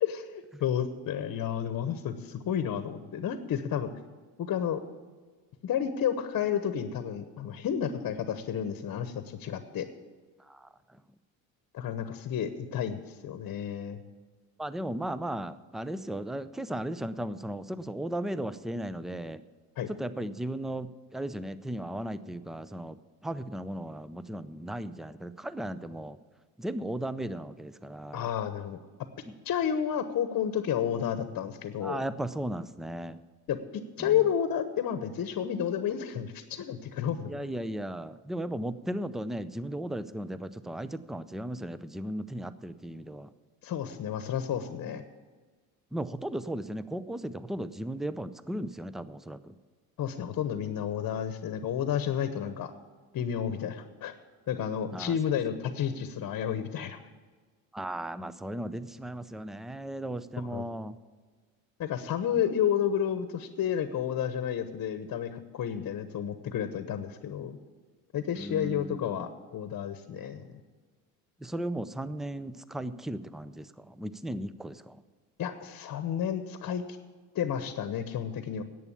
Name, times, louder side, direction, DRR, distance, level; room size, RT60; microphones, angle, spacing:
voice 1, 0.0-3.9 4.4-4.8 5.6-9.9 11.7-14.0 19.8-19.9 28.1-28.8 29.4-32.0 33.5-33.6 34.0-37.3 43.6-45.0 50.0-52.7 53.1-54.1 54.5-57.0 60.4-60.6 61.8-67.6 68.1-70.5 75.4-76.8 77.3-78.6, left 9 dB, 45° left, 10 dB, 1.0 m, -31 dB
voice 2, 14.6-19.4 20.0-20.9 21.1-23.0 23.2-26.2 26.6-28.3 31.8-33.2 37.3-43.3 45.9-49.5 54.9-55.1 57.7-61.0 68.4-68.9 71.4-73.6 74.0-74.9, right 1 dB, ahead, 15 dB, 0.4 m, -36 dB
11.0 x 8.3 x 8.5 m, 1.4 s
supercardioid pair, 85°, 41 cm